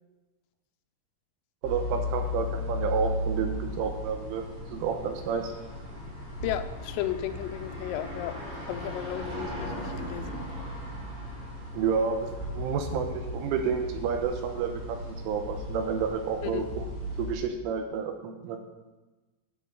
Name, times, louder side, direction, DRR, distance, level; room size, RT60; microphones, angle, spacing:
sound 1, 1.6-17.3, left 1 dB, 35° right, 3.5 m, -36 dB
voice 1, 1.6-4.4 4.7-5.5 11.7-16.8 17.2-18.6, right 6 dB, 85° right, 5 dB, 3.2 m, -30 dB
voice 2, 6.4-8.4 8.7-10.5 16.4-16.7, left 11 dB, 90° left, 9 dB, 3.3 m, -34 dB
9.7 x 8.3 x 3.8 m, 1.2 s
omnidirectional pair, 5.9 m